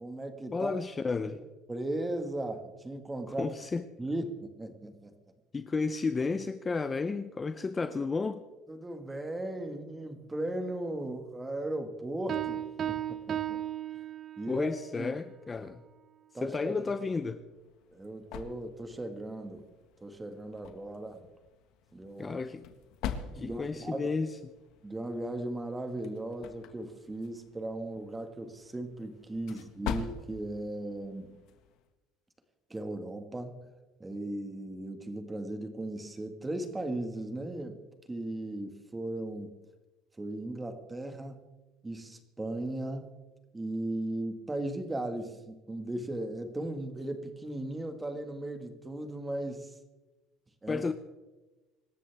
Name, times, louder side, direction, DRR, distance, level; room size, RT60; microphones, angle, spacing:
voice 1, 0.0-0.7 1.3-1.4 1.7-3.5 4.0-5.1 8.7-13.6 14.4-15.1 16.3-16.8 17.9-19.6 20.0-21.3 21.9-22.4 23.1-24.1 24.8-31.4 32.7-33.6 34.0-37.8 38.1-39.5 40.2-41.4 41.8-43.1 43.5-49.8 50.6-50.8, right 1 dB, 10° right, 7 dB, 1.7 m, -37 dB
voice 2, 0.5-1.4 3.4-3.9 4.1-4.2 5.5-8.4 14.5-15.8 16.4-17.4 22.2-22.6 23.3-24.5 50.7-50.9, left 4 dB, 20° left, 11 dB, 0.6 m, -32 dB
Piano, 12.3-14.7, right 11 dB, 35° right, 0.7 m, -35 dB
sound 1, 17.4-31.9, left 8 dB, 65° left, 1.5 m, -45 dB
25.5 x 13.0 x 3.5 m, 1.1 s
cardioid pair, 140°, 0 cm